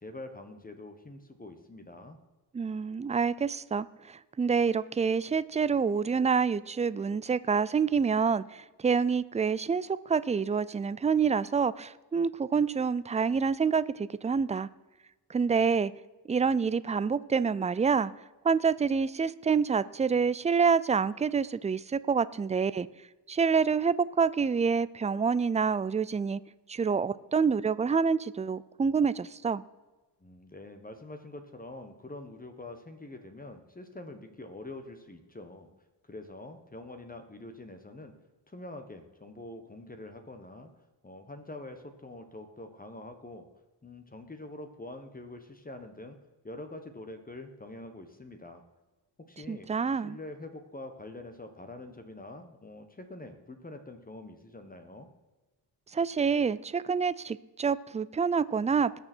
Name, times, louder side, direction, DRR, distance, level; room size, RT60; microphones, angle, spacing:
voice 1, 0.0-2.2 30.2-35.7 36.0-38.2 38.5-40.7 41.0-43.5 43.8-46.1 46.4-48.6 49.3-49.7 49.9-55.1, left 2 dB, 20° left, 6 dB, 1.2 m, -45 dB
voice 2, 2.5-14.7 15.3-15.9 16.3-18.1 18.4-22.9 23.3-26.4 26.7-29.6 49.5-50.2 55.9-59.0, right 5 dB, 20° right, 17 dB, 0.3 m, -27 dB
19.5 x 6.7 x 4.5 m, 1.2 s
wide cardioid pair, 115°, 41 cm